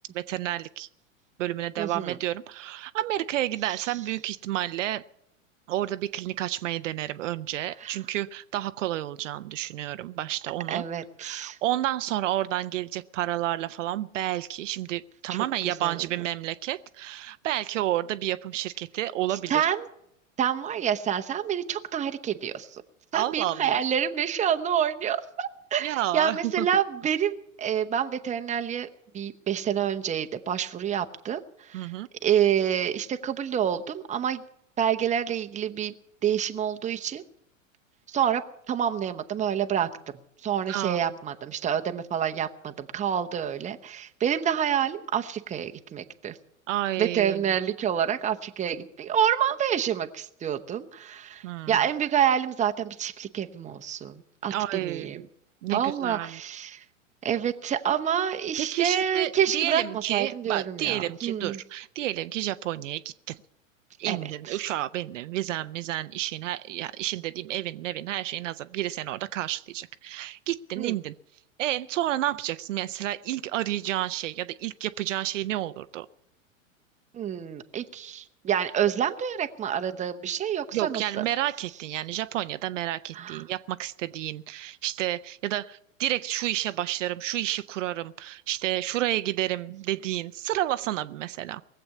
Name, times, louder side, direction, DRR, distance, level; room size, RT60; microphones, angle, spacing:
voice 1, 0.1-0.9 1.4-5.0 5.7-10.8 11.2-19.7 23.1-23.8 25.8-26.7 31.7-32.1 40.7-41.1 46.7-47.5 51.4-51.8 54.5-55.3 55.6-56.4 58.6-63.4 64.0-71.1 71.6-76.1 80.7-91.6, right 14 dB, 65° right, 14 dB, 0.6 m, -30 dB
voice 2, 1.8-2.2 7.8-8.0 10.7-11.6 15.3-16.0 19.3-19.9 20.4-22.8 23.1-28.9 29.1-31.9 32.2-34.4 34.8-35.9 36.2-37.2 38.1-39.9 40.4-46.4 47.0-55.2 55.7-56.8 57.2-59.8 60.1-61.6 64.1-64.2 64.5-64.6 70.8-70.9 77.1-81.2 83.1-83.4, right 9 dB, 20° right, 7 dB, 0.9 m, -28 dB
19.5 x 7.9 x 8.2 m, 0.78 s
hypercardioid pair, 105°, 40 cm